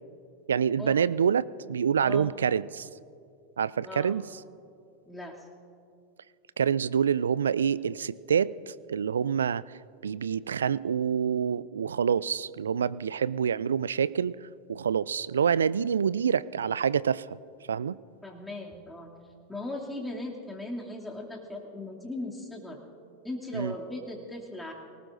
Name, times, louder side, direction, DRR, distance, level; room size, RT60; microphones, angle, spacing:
voice 1, 0.5-2.9 3.6-4.2 6.6-17.3 17.7-18.0 23.5-23.7, right 7 dB, 80° right, 20 dB, 0.3 m, -27 dB
voice 2, 2.0-2.3 3.8-4.2 5.1-5.5 18.2-19.1 19.5-22.8 23.2-24.7, left 2 dB, 10° left, -2 dB, 2.6 m, -38 dB
23.5 x 19.0 x 2.6 m, 2.5 s
hypercardioid pair, 90°, 0 cm